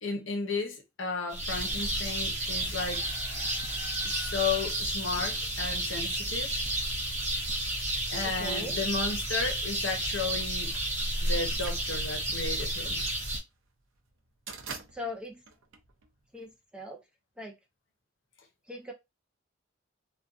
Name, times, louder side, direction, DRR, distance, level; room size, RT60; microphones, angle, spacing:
voice 1, 0.0-3.1 4.0-6.6 8.1-10.7 11.2-13.0, left 4 dB, 65° left, 0.7 m, -34 dB
sound 1, 1.3-13.4, right 1 dB, 35° right, 0.8 m, -31 dB
voice 2, 8.2-8.8 14.9-15.4 16.3-17.0 17.4-17.5 18.7-18.9, left 1 dB, 5° right, 0.3 m, -40 dB
sound 2, 10.4-16.5, right 5 dB, 75° right, 0.5 m, -46 dB
2.5 x 2.2 x 2.4 m
head